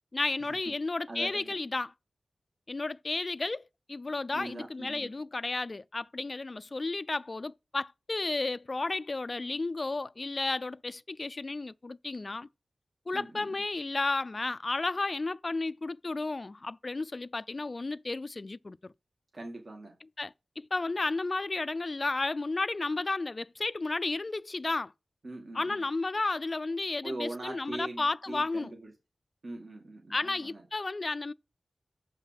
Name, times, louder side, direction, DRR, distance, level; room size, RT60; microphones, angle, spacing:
voice 1, 0.1-1.9 2.7-12.5 13.1-18.9 20.2-24.9 25.5-28.7 30.1-31.3, left 3 dB, 40° left, 0.4 m, -33 dB
voice 2, 1.1-1.6 4.3-5.1 13.1-13.6 19.3-19.9 25.2-25.8 27.0-28.9 29.4-30.6, right 2 dB, 55° right, 2.1 m, -41 dB
7.2 x 5.7 x 5.9 m
wide cardioid pair, 95°, 0 cm